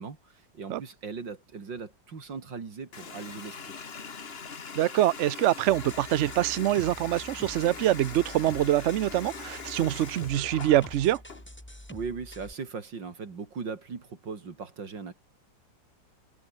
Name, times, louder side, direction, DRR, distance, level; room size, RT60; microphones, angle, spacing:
voice 1, 0.0-3.7 11.9-15.1, right 5 dB, 85° right, 3.6 m, -39 dB
Water tap faucet, 2.9-11.4, left 5 dB, 35° left, 1.6 m, -42 dB
voice 2, 4.8-11.2, right 13 dB, 70° right, 0.6 m, -25 dB
sound 1, 5.7-12.5, left 1 dB, 5° left, 2.2 m, -47 dB
omnidirectional pair, 1.9 m